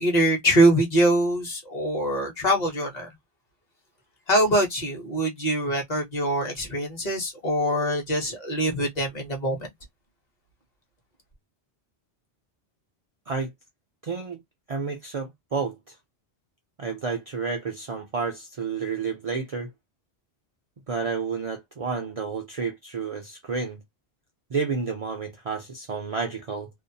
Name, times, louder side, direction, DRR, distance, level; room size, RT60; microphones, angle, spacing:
voice 1, 0.0-3.1 4.3-9.6, right 1 dB, 45° left, 1.0 m, -23 dB
voice 2, 14.0-14.4 14.7-15.9 16.8-19.7 20.9-23.8 24.5-26.7, right 5 dB, 50° right, 0.4 m, -30 dB
2.5 x 2.1 x 2.6 m
omnidirectional pair, 1.0 m